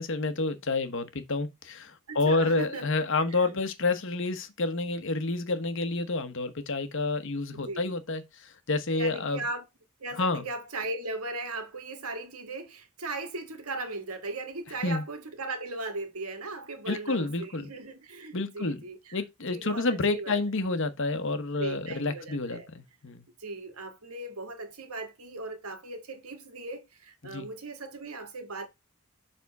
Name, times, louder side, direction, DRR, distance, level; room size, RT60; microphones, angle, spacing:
voice 1, 0.0-9.4 10.2-10.4 14.8-15.0 16.9-17.7 18.3-18.8 19.1-23.2 27.2-27.5, left 3 dB, 60° left, 1.0 m, -29 dB
voice 2, 2.1-2.9 3.2-3.6 7.5-7.9 8.9-9.6 10.0-19.2 19.5-20.4 21.6-22.7 23.4-28.7, right 2 dB, 85° right, 1.7 m, -38 dB
7.1 x 3.6 x 4.7 m
head